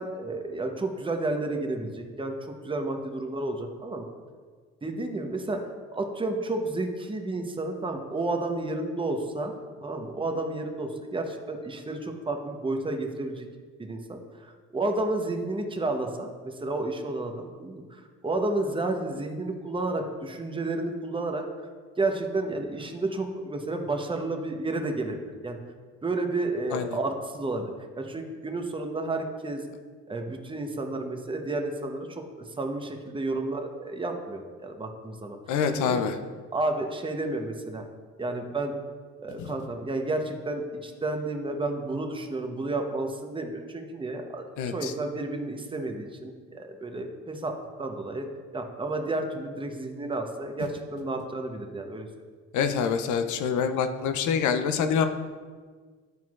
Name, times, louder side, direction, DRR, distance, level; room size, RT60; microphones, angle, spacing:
voice 1, 0.0-4.1 4.8-5.6 5.9-9.5 9.8-13.5 13.8-21.4 22.0-25.6 26.0-29.6 30.1-35.4 35.7-36.0 36.5-37.8 38.2-38.8 39.2-44.5 44.7-48.3 48.5-52.1, right 2 dB, 15° right, 4 dB, 0.8 m, -31 dB
voice 2, 35.5-36.2 39.4-39.5 44.6-44.9 52.5-55.0, left 7 dB, 65° left, 8 dB, 0.6 m, -26 dB
9.3 x 4.4 x 2.4 m, 1.5 s
supercardioid pair, 60°, 32 cm